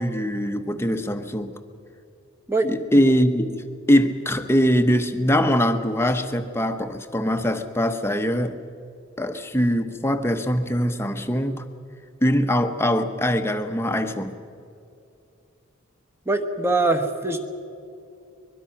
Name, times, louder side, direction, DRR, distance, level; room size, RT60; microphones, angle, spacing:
voice 1, 0.0-1.5 2.6-8.6 9.2-11.6 12.2-14.3, equal, 10° left, 7 dB, 0.9 m, -22 dB
voice 2, 16.3-17.5, right 2 dB, 10° right, 6 dB, 1.2 m, -23 dB
23.0 x 22.0 x 5.9 m, 2.6 s
head